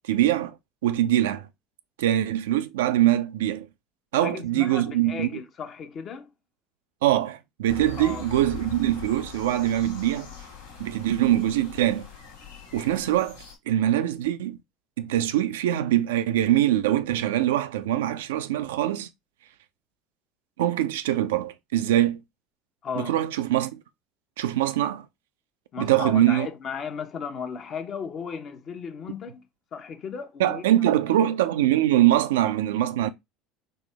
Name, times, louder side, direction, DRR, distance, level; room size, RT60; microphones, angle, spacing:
voice 1, 0.1-0.5 0.8-1.5 2.0-3.7 4.1-5.3 7.0-10.3 10.8-12.1 12.7-13.4 13.7-14.6 15.0-19.1 20.6-22.2 23.0-23.8 24.4-25.1 25.8-26.5 30.4-33.1, right 13 dB, 75° right, 0.4 m, -23 dB
voice 2, 4.1-6.3 8.0-8.3 22.8-23.2 25.7-29.5 29.7-30.6 31.2-31.3, left 6 dB, 45° left, 0.9 m, -35 dB
sound 1, 7.7-13.5, left 6 dB, 80° left, 1.3 m, -42 dB
4.1 x 2.8 x 3.3 m
hypercardioid pair, 70°, 0 cm